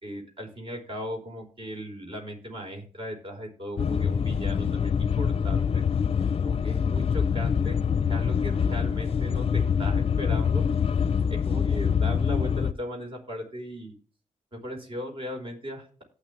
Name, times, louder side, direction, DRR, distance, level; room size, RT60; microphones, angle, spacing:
voice 1, 0.0-5.8 6.4-10.6 11.4-13.9 14.5-16.0, equal, 40° right, 2 dB, 4.6 m, -37 dB
sound 1, 3.8-12.7, left 7 dB, 45° left, 0.5 m, -25 dB
18.0 x 6.1 x 3.3 m, 0.39 s
cardioid pair, 75°, 13 cm